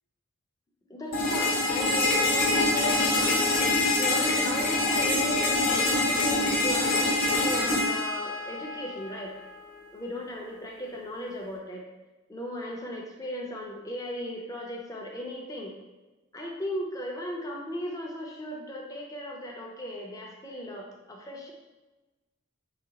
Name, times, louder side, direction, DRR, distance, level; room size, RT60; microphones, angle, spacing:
voice 1, 0.9-7.2 7.4-9.3 9.9-11.9 12.3-15.7 16.3-21.5, equal, 15° left, -1 dB, 0.5 m, -37 dB
sound 1, 1.1-9.1, left 2 dB, 45° left, 0.8 m, -25 dB
4.8 x 2.3 x 2.8 m, 1.1 s
head